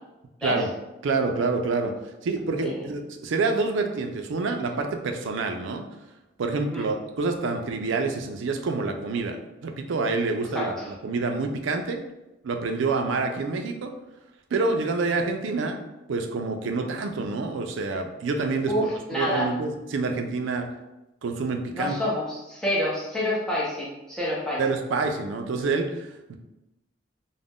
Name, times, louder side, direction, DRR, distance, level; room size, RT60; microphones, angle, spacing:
voice 1, 1.0-1.9 2.2-5.9 6.4-12.0 12.4-13.9 14.5-15.8 16.1-20.7 21.2-22.0 24.6-26.4, right 3 dB, 80° right, 5 dB, 0.4 m, -27 dB
voice 2, 10.5-10.9 18.7-19.5 21.7-24.6, left 1 dB, 5° left, -7 dB, 0.7 m, -28 dB
2.4 x 2.1 x 3.5 m, 0.98 s
head